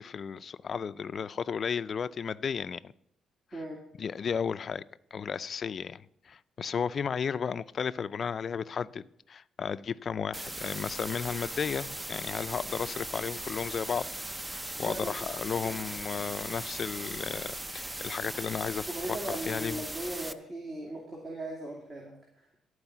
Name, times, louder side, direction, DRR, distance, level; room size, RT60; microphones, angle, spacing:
voice 1, 0.0-2.9 4.0-4.8 5.1-6.0 6.3-9.0 9.3-14.1 14.5-19.2 19.5-19.8, left 6 dB, 50° left, 0.4 m, -34 dB
voice 2, 3.5-3.8 14.8-15.1 15.6-15.8 18.9-22.1, right 1 dB, 40° right, 2.6 m, -38 dB
sound 1, 10.3-20.3, right 1 dB, 15° right, 0.5 m, -39 dB
12.5 x 4.8 x 7.1 m
cardioid pair, 90°, 0 cm